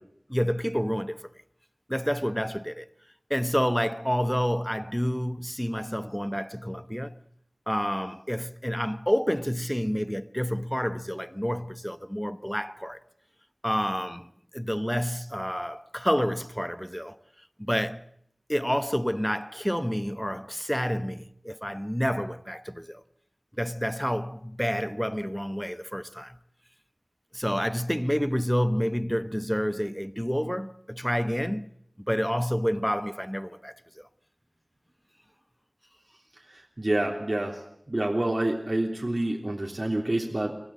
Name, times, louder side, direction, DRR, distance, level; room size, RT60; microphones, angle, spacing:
voice 1, 0.3-1.2 1.9-2.9 3.3-7.2 7.7-13.0 13.6-17.2 17.6-18.0 18.5-23.0 23.6-26.4 27.3-31.7 32.1-34.1, equal, 5° left, 1.1 m, -29 dB
voice 2, 36.5-37.6 37.9-40.6, right 1 dB, 50° right, 3.3 m, -28 dB
24.5 x 16.0 x 8.4 m
wide cardioid pair, 40°, 0 cm